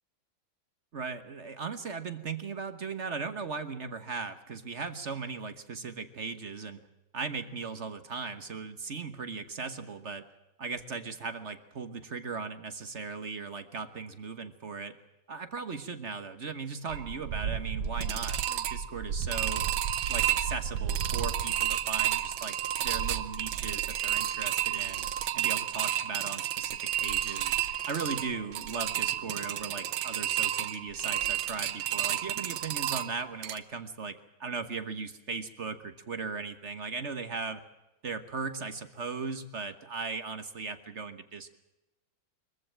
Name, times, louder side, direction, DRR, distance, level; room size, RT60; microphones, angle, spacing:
voice 1, 0.9-6.8 7.1-10.3 10.6-14.9 15.3-19.7 20.1-25.1 25.3-27.6 27.9-37.6 38.0-41.5, right 4 dB, 40° right, 10 dB, 1.3 m, -38 dB
sound 1, 16.9-33.6, right 11 dB, 75° right, 1.7 m, -31 dB
23.0 x 14.5 x 8.8 m, 0.98 s
omnidirectional pair, 2.2 m